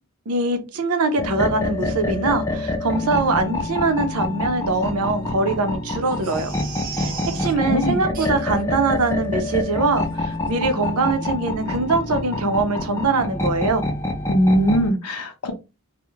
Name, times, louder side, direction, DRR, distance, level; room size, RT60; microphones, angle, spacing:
voice 1, 0.3-6.5 6.9-13.9, right 3 dB, 85° right, 0.6 m, -23 dB
sound 1, 1.2-14.9, left 2 dB, 15° left, 0.5 m, -27 dB
Crying sobbing, 6.0-7.5 8.1-8.6 9.0-9.1 9.4-9.6 10.0-10.2 10.5-10.6, right 7 dB, 40° right, 0.5 m, -37 dB
voice 2, 7.0-8.0 14.3-15.5, equal, 90° left, 0.7 m, -21 dB
2.2 x 2.1 x 3.0 m
head